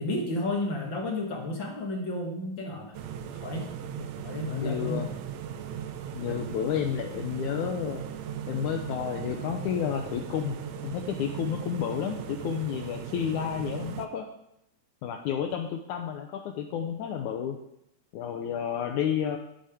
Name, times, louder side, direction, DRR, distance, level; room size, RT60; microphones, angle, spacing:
voice 1, 0.0-2.9 3.2-3.7 4.2-5.1, left 2 dB, 50° left, 0 dB, 1.6 m, -32 dB
sound 1, 2.9-14.1, right 8 dB, 85° right, 1.5 m, -38 dB
voice 2, 4.5-5.1 6.1-8.0 8.5-10.6 10.8-14.3 15.0-17.6 18.1-19.4, left 8 dB, 75° left, 4 dB, 1.9 m, -31 dB
12.0 x 8.0 x 4.9 m, 0.79 s
omnidirectional pair, 4.1 m